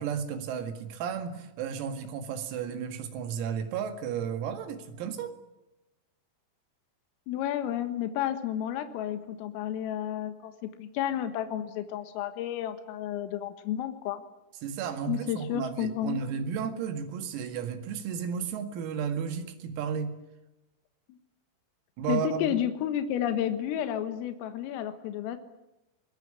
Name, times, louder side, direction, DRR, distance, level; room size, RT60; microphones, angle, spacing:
voice 1, 0.0-5.3 14.6-20.2 22.0-22.6, right 7 dB, 90° right, 8 dB, 4.8 m, -33 dB
voice 2, 7.3-14.2 15.1-16.2 21.1-21.2 22.1-25.4, left 10 dB, 85° left, 9 dB, 4.1 m, -31 dB
22.5 x 21.0 x 9.7 m, 0.95 s
omnidirectional pair, 6.0 m